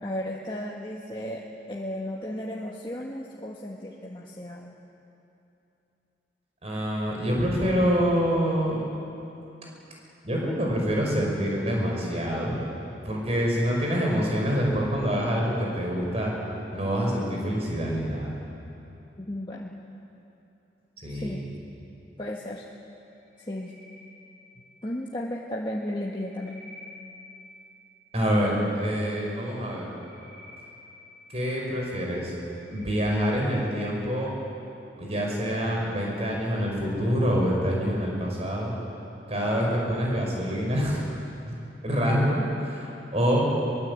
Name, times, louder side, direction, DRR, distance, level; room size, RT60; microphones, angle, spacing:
voice 1, 0.0-4.8 19.2-19.7 21.1-21.4 22.2-22.6 23.4-23.7 24.8-26.6, left 1 dB, 25° left, -3 dB, 1.5 m, -34 dB
voice 2, 6.6-8.8 10.2-12.6 13.0-16.3 16.7-18.4 21.0-21.5 28.1-29.9 31.3-32.3 32.7-34.3 35.0-38.7 39.3-41.0 41.5-41.6 41.8-43.5, equal, 35° right, -2 dB, 5.4 m, -26 dB
sound 1, 23.2-24.9 25.8-27.7 29.6-31.7 32.2-33.8, left 2 dB, 5° left, 6.0 m, -50 dB
22.5 x 22.5 x 8.3 m, 2.9 s
head